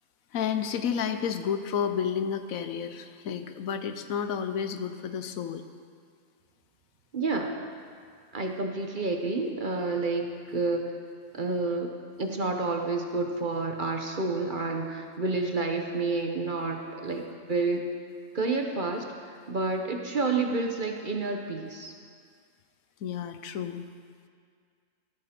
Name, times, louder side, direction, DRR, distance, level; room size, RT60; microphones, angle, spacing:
voice 1, 0.3-5.6 17.1-17.2 23.0-23.9, left 7 dB, 75° left, 9 dB, 1.1 m, -31 dB
voice 2, 7.1-7.6 8.3-11.0 11.3-11.9 12.2-17.8 18.3-21.9, right 3 dB, 40° right, 3 dB, 1.0 m, -29 dB
14.0 x 13.5 x 4.4 m, 2.1 s
omnidirectional pair, 1.5 m